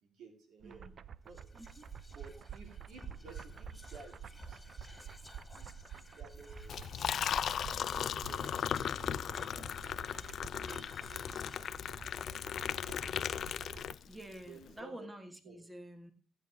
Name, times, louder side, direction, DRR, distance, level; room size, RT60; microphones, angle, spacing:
voice 1, 0.0-0.9 1.2-1.5 2.1-6.8 7.7-9.1 9.4-9.9 10.5-12.5 12.8-13.9 14.5-15.1 15.4-15.6, right 3 dB, 80° right, 3 dB, 3.6 m, -56 dB
sound 1, 0.6-14.0, right 8 dB, 50° right, 0.5 m, -50 dB
Whispering, 1.3-13.8, equal, 5° left, 2.3 m, -54 dB
voice 2, 1.5-1.9 14.0-16.1, right 1 dB, 15° right, 7 dB, 1.8 m, -49 dB
Liquid, 6.6-14.3, left 9 dB, 60° left, 0.4 m, -37 dB
16.0 x 8.9 x 3.5 m, 0.36 s
cardioid pair, 90°, 0 cm